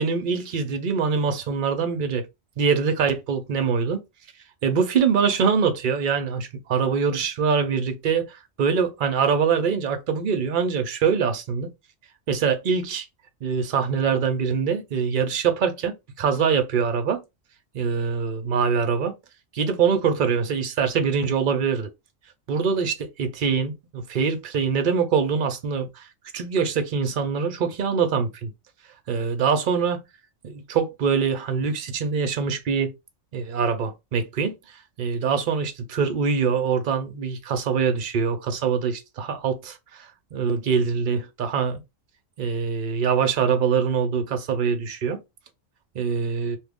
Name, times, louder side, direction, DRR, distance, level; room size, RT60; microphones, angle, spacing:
voice 1, 0.0-2.3 2.6-4.0 4.6-11.7 12.3-13.1 13.4-17.2 17.7-19.2 19.5-21.9 22.5-26.1 26.3-28.5 29.1-30.0 30.4-32.9 33.3-34.6 35.0-41.8 42.4-45.2 45.9-46.6, right 6 dB, 50° right, 0.7 m, -24 dB
2.9 x 2.4 x 3.5 m
omnidirectional pair, 1.3 m